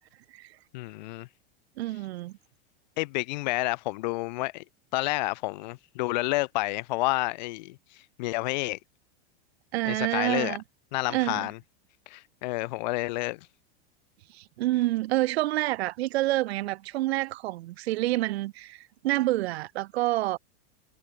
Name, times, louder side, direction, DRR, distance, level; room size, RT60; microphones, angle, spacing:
voice 1, 0.7-1.3 3.0-4.6 4.9-7.8 8.2-8.8 9.9-10.6 10.9-11.6 12.1-13.5, left 21 dB, 45° left, 0.4 m, -29 dB
voice 2, 1.8-2.4 9.7-10.6 11.1-11.5 14.3-20.4, right 17 dB, 80° right, 0.6 m, -28 dB
supercardioid pair, 160°, 31 cm